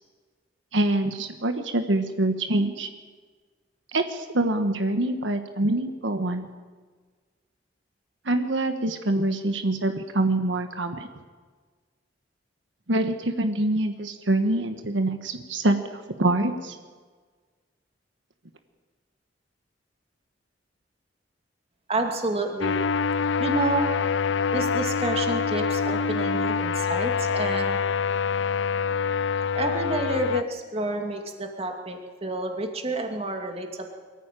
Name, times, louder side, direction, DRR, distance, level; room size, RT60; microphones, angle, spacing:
voice 1, 0.7-2.9 3.9-6.4 8.2-11.1 12.9-16.7, right 2 dB, 85° right, 7 dB, 1.5 m, -25 dB
voice 2, 21.9-22.8 23.4-23.9 24.5-27.8 29.5-33.9, right 2 dB, 35° right, 3 dB, 2.5 m, -29 dB
sound 1, 22.6-30.4, left 5 dB, 80° left, 0.5 m, -25 dB
23.0 x 14.5 x 9.2 m, 1.5 s
head